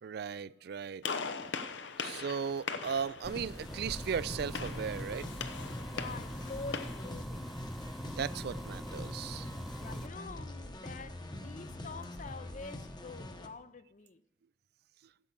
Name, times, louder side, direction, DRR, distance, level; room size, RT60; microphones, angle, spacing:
voice 1, 0.0-1.1 2.0-5.3 8.2-9.5, right 7 dB, 60° right, 0.4 m, -37 dB
Gunshot gunfire, 1.0-7.1, left 5 dB, 85° left, 0.9 m, -41 dB
sound 1, 3.2-10.1, equal, ahead, 0.5 m, -43 dB
sound 2, 3.3-13.5, left 1 dB, 25° left, 1.0 m, -45 dB
voice 2, 5.9-7.5 9.8-14.2, left 3 dB, 45° left, 0.7 m, -46 dB
10.5 x 7.3 x 6.7 m
head